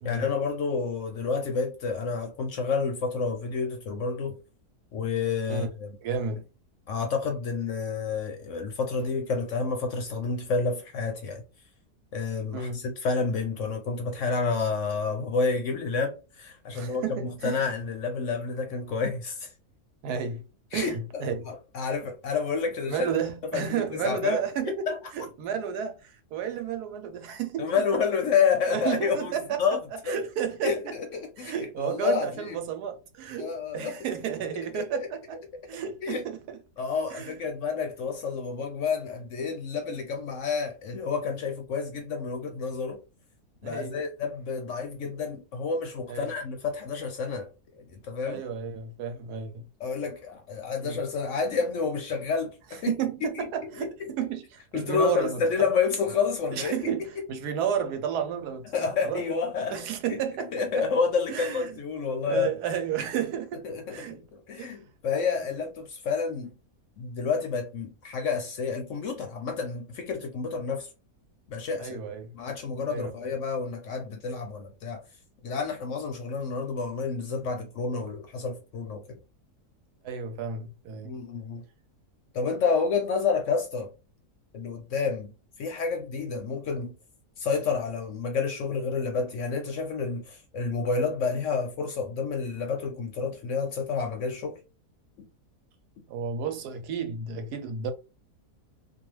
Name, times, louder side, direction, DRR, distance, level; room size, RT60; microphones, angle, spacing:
voice 1, 0.0-4.4 4.9-6.0 6.9-11.4 12.1-19.5 20.7-23.1 23.5-24.4 24.9-25.0 27.6-29.8 30.1-30.2 30.6-32.6 33.4-34.0 34.7-35.1 36.0-36.2 36.8-43.0 43.6-47.5 47.8-48.4 49.8-52.9 53.2-53.5 53.7-53.9 54.7-57.0 58.7-59.8 60.1-60.2 60.5-62.5 63.6-66.5 67.0-70.9 71.5-72.0 72.3-75.0 75.4-79.2 81.0-81.6 82.3-83.9 84.5-85.3 85.6-86.9 87.4-94.6 95.2-95.3, left 5 dB, 65° left, 0.8 m, -29 dB
voice 2, 6.0-6.5 12.5-12.8 16.7-17.7 20.0-20.4 20.7-21.5 22.9-24.9 25.1-27.8 28.7-29.6 30.1-30.9 31.4-35.4 35.7-36.6 37.1-37.3 43.6-44.0 46.1-46.3 48.3-49.7 50.8-51.0 52.9-55.4 56.6-59.2 59.7-60.9 61.3-61.7 62.2-63.6 63.9-64.2 64.6-64.8 71.8-72.3 72.9-73.1 80.0-81.1 96.1-97.9, right 7 dB, 80° right, 1.2 m, -32 dB
2.5 x 2.3 x 3.0 m
omnidirectional pair, 1.7 m